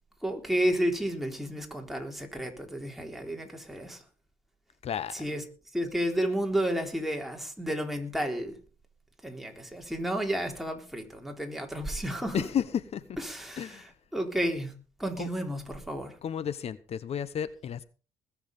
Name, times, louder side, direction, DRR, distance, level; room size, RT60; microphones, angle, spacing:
voice 1, 0.2-4.0 5.1-5.4 5.7-8.5 9.2-12.5 13.2-16.2, equal, ahead, 3.8 m, -32 dB
voice 2, 4.8-5.1 12.3-12.6 12.9-13.0 13.6-13.8 15.2-15.3 16.2-17.8, left 9 dB, 50° left, 0.9 m, -32 dB
20.5 x 7.2 x 5.4 m
supercardioid pair, 85°, 13 cm